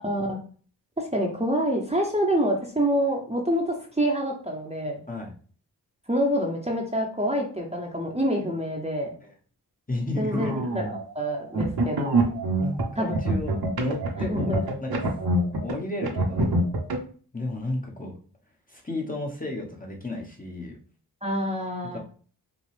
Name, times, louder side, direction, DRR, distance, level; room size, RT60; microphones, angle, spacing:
voice 1, 0.0-0.4 1.0-5.0 6.1-9.1 10.2-10.8 11.1-12.2 13.0-13.1 14.3-14.6 21.2-22.0, equal, 15° right, 0 dB, 0.9 m, -26 dB
voice 2, 9.9-10.6 12.6-14.5 14.8-15.0 15.6-16.6 17.3-18.1 18.7-20.7 21.9-22.0, left 2 dB, 20° left, -1 dB, 1.0 m, -32 dB
sound 1, 10.3-11.0 11.5-15.7 16.0-17.0, right 2 dB, 65° right, 1.1 m, -25 dB
5.2 x 2.3 x 3.3 m, 0.42 s
wide cardioid pair, 70°, 40 cm